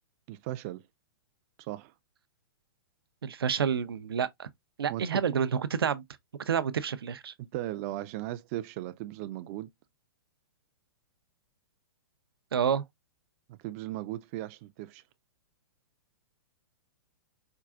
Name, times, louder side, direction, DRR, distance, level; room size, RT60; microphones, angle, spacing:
voice 1, 0.3-0.8 1.6-1.9 4.9-5.2 7.5-9.7 13.5-15.0, right 15 dB, 40° right, 0.4 m, -37 dB
voice 2, 3.2-4.5 4.8-6.0 6.5-7.3 12.5-12.8, right 7 dB, 90° right, 0.5 m, -28 dB
4.6 x 2.4 x 2.4 m
hypercardioid pair, 135°, 12 cm